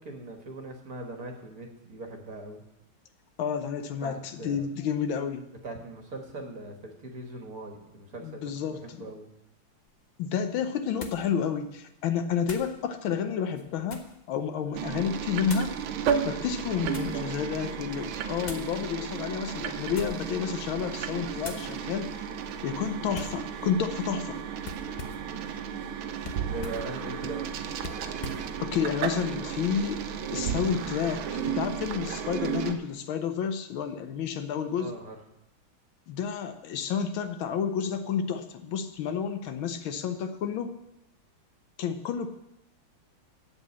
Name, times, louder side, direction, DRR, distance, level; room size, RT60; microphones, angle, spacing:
voice 1, 0.0-2.6 4.0-4.7 5.6-9.3 16.3-17.5 17.7-17.9 26.4-27.6 34.8-35.2, right 2 dB, 50° right, 3 dB, 1.6 m, -41 dB
voice 2, 3.4-5.5 8.2-9.1 10.2-15.8 16.2-22.2 22.6-24.4 28.6-30.0 30.3-34.9 36.1-40.8 41.8-42.3, left 7 dB, 75° left, 8 dB, 1.5 m, -30 dB
sound 1, 9.9-10.0 11.0-11.3 12.4-12.7 13.5-14.2 15.4-15.8 16.5-17.2 18.4-18.7 19.8-20.3 20.7-21.0 21.4-21.7 23.1-23.4 24.6-25.3 26.2-26.9 27.8-28.5, left 3 dB, 40° left, 0.6 m, -42 dB
sound 2, 14.7-32.8, right 7 dB, 80° right, 1.6 m, -33 dB
8.2 x 7.5 x 8.2 m, 0.87 s
omnidirectional pair, 2.3 m